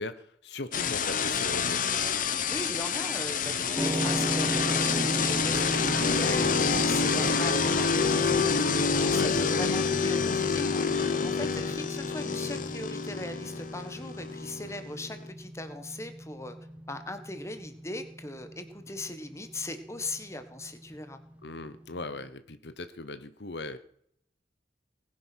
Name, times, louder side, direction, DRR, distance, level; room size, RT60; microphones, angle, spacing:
voice 1, 0.0-1.8 9.1-9.6 11.2-11.5 21.4-23.8, left 2 dB, 65° left, 12 dB, 1.0 m, -39 dB
sound 1, 0.7-15.3, left 5 dB, 45° left, 1.2 m, -27 dB
voice 2, 2.5-16.6 16.9-21.2, left 1 dB, 15° left, 9 dB, 1.6 m, -39 dB
sound 2, 3.8-22.0, right 1 dB, 5° right, 1.6 m, -37 dB
19.0 x 10.0 x 6.3 m, 0.70 s
head